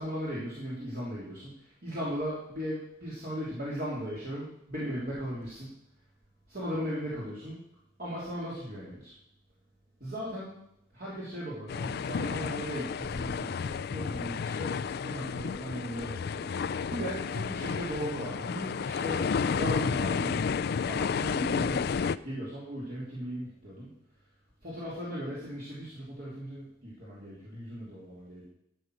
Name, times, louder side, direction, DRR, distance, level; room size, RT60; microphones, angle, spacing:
voice 1, 0.0-5.7 6.5-7.6 8.0-9.1 10.0-10.5 10.9-16.5 16.9-20.4 20.9-21.8 22.2-23.9 24.6-28.5, equal, 45° right, -7 dB, 3.3 m, -37 dB
sound 1, 11.7-22.2, left 6 dB, 50° left, 0.3 m, -31 dB
13.0 x 6.7 x 6.2 m, 0.75 s
head